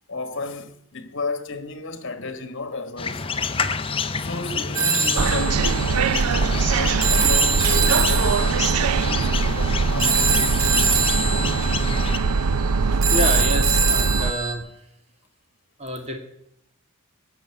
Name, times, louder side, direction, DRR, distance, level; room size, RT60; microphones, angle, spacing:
voice 1, 0.1-3.2 4.2-10.6, left 3 dB, 55° left, 1.5 m, -33 dB
sound 1, 3.0-12.2, left 5 dB, 25° left, 0.7 m, -29 dB
Telephone, 4.7-14.5, right 5 dB, 60° right, 1.9 m, -24 dB
sound 2, 5.2-14.3, right 4 dB, 85° right, 0.5 m, -22 dB
voice 2, 13.1-14.7 15.8-16.2, equal, 30° right, 2.3 m, -28 dB
16.5 x 7.5 x 9.8 m
head